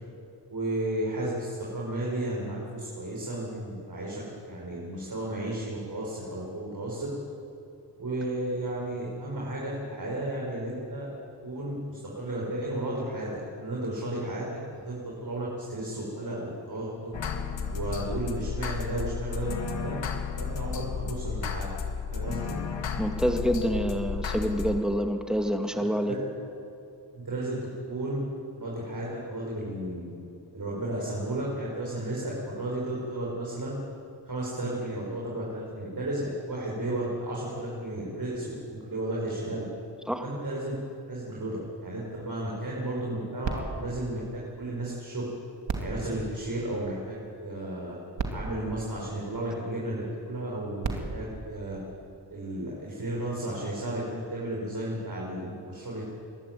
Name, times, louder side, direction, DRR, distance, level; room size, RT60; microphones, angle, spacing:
voice 1, 0.5-7.1 8.0-11.1 11.4-14.5 14.9-17.1 17.7-20.0 20.4-21.7 22.1-22.6 25.7-26.2 27.1-27.6 27.9-28.2 28.6-30.1 30.5-33.8 34.3-39.6 40.2-40.7 41.1-45.3 45.8-48.0 48.3-51.8 52.3-56.1, right 1 dB, 50° right, -4 dB, 5.7 m, -33 dB
sound 1, 17.1-24.8, left 6 dB, 85° left, 1.7 m, -33 dB
voice 2, 23.0-26.2 40.1-40.2, equal, ahead, 4 dB, 2.4 m, -27 dB
sound 2, 43.4-45.1 45.6-47.2 47.9-48.0 48.2-49.7 50.6-52.4 53.1-53.2, right 4 dB, 75° right, 2.6 m, -37 dB
23.0 x 12.5 x 9.4 m, 2.7 s
cardioid pair, 55°, 44 cm